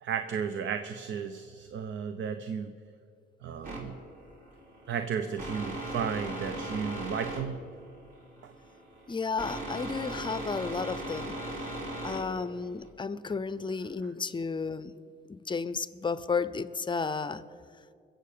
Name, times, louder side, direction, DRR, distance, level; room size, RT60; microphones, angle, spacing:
voice 1, 0.0-2.7 3.4-4.0 4.9-7.6 8.4-8.5, right 7 dB, 70° right, 9 dB, 0.7 m, -34 dB
sound 1, 3.6-12.9, right 1 dB, 45° right, 3.9 m, -38 dB
voice 2, 9.1-11.4 12.0-14.9 15.3-17.4, left 5 dB, 25° left, 15 dB, 0.5 m, -33 dB
21.5 x 7.7 x 6.7 m, 2.3 s
cardioid pair, 90°, 20 cm